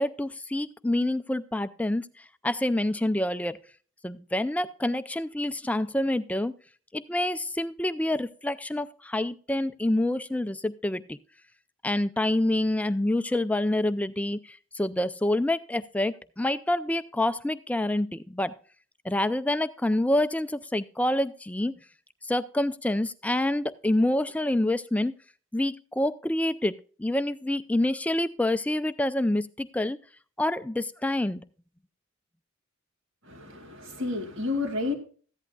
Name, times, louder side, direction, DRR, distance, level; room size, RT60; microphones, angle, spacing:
voice 1, 0.0-3.6 4.0-6.5 6.9-11.2 11.8-18.6 19.0-21.7 22.2-25.1 25.5-30.0 30.4-31.4, left 1 dB, 5° left, 0.4 m, -27 dB
voice 2, 33.2-34.9, left 3 dB, 65° right, 2.3 m, -31 dB
15.0 x 11.0 x 2.3 m
head